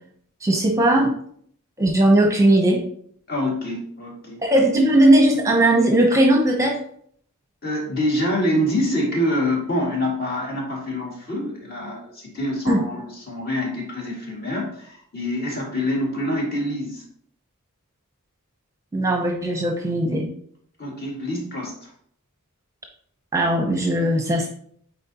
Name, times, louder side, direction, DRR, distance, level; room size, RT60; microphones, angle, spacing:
voice 1, 0.4-1.1 1.8-2.8 4.4-6.8 12.7-12.8 18.9-20.3 23.3-24.5, right 1 dB, 15° right, 2 dB, 0.8 m, -18 dB
voice 2, 3.3-4.4 7.6-17.0 20.8-21.9, left 1 dB, 45° left, -3 dB, 2.2 m, -26 dB
9.1 x 4.3 x 2.9 m, 0.63 s
head